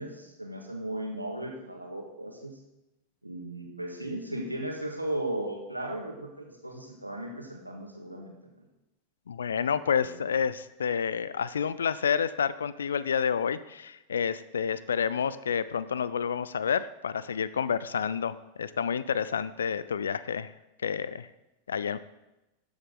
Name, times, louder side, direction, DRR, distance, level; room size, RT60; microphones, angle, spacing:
voice 1, 0.0-2.6 3.2-8.7 9.9-10.2, right 1 dB, 85° right, 1 dB, 1.7 m, -36 dB
voice 2, 9.3-20.5 20.8-21.3 21.7-22.0, left 7 dB, 70° left, 16 dB, 0.4 m, -29 dB
13.5 x 7.1 x 3.9 m, 0.96 s
figure-of-eight pair, 90°, 0 cm